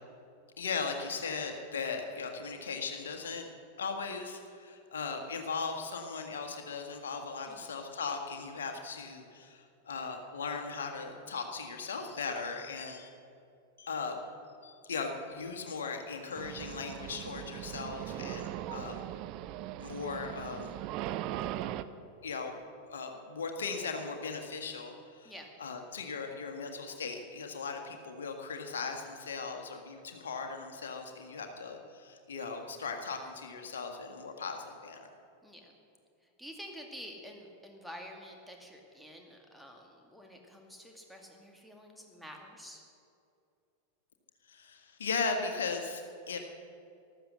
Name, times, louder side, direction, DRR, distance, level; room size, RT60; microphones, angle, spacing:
voice 1, 0.6-3.5 3.8-13.1 13.8-14.2 14.6-19.0 19.8-20.7 22.2-22.6 22.9-25.3 25.6-35.1 44.5-46.0 46.3-46.4, left 4 dB, 65° left, 4 dB, 1.6 m, -38 dB
sound 1, 16.4-21.8, right 13 dB, 40° right, 0.5 m, -39 dB
voice 2, 35.4-35.8 36.2-42.8, equal, ahead, 1 dB, 2.0 m, -49 dB
14.5 x 12.5 x 6.5 m, 2.5 s
figure-of-eight pair, 90°, 0 cm